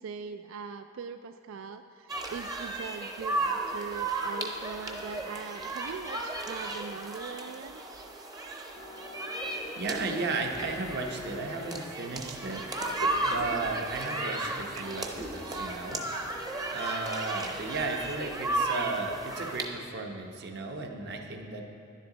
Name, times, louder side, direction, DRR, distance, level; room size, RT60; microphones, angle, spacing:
voice 1, 0.0-7.8 14.6-14.8, right 6 dB, 70° right, 9 dB, 0.3 m, -41 dB
sound 1, 2.1-19.7, right 2 dB, 20° right, 0.7 m, -34 dB
sound 2, 8.7-16.7, left 2 dB, 25° left, 0.4 m, -49 dB
voice 2, 9.8-12.6 13.2-16.0 16.7-21.7, right 3 dB, 55° right, 3 dB, 0.9 m, -34 dB
sound 3, 12.8-19.4, left 2 dB, 70° left, 0.6 m, -51 dB
11.0 x 10.5 x 3.9 m, 2.5 s
head